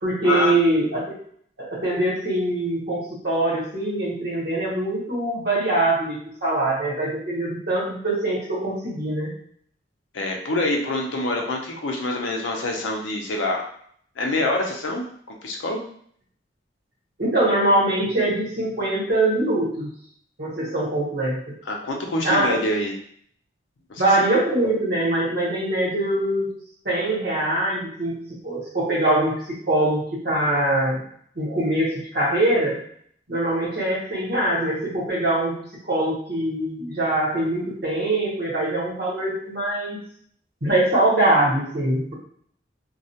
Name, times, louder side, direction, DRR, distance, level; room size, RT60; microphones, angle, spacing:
voice 1, 0.0-1.2 1.6-9.3 17.2-19.9 20.4-21.4 22.2-22.6 23.9-26.5 26.8-31.0 31.3-32.8 33.3-35.6 35.8-40.0 40.6-42.1, right 1 dB, 60° right, -6 dB, 1.0 m, -23 dB
voice 2, 10.1-13.7 14.2-15.8 21.7-22.9 23.9-24.0, left 2 dB, 75° left, 1 dB, 0.5 m, -26 dB
2.3 x 2.1 x 2.7 m, 0.62 s
head